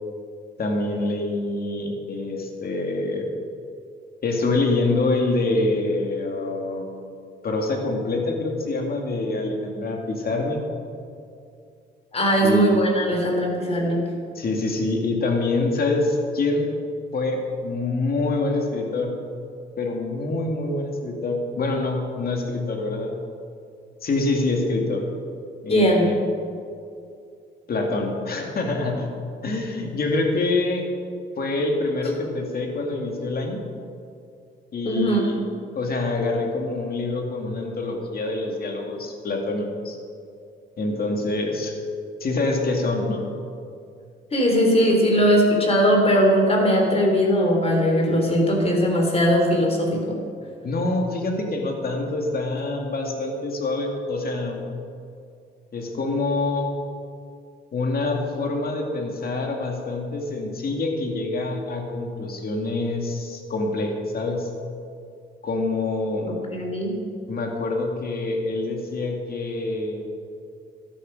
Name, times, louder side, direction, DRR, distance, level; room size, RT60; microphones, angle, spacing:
voice 1, 0.6-3.3 4.2-10.6 12.4-12.8 14.3-16.7 17.1-19.1 19.8-23.2 24.0-25.1 25.6-26.2 27.7-29.1 29.4-30.9 31.4-33.6 34.7-35.4 35.7-40.0 40.8-41.7 42.2-43.3 50.6-54.7 55.7-56.8 57.7-64.5 65.4-66.4 67.3-70.1, left 2 dB, 50° left, 2 dB, 2.4 m, -26 dB
voice 2, 12.1-14.0 25.7-26.1 34.9-35.3 44.3-50.0 66.3-66.9, equal, 30° left, 1 dB, 3.5 m, -19 dB
12.5 x 11.5 x 5.4 m, 2.4 s
cardioid pair, 90°, 20 cm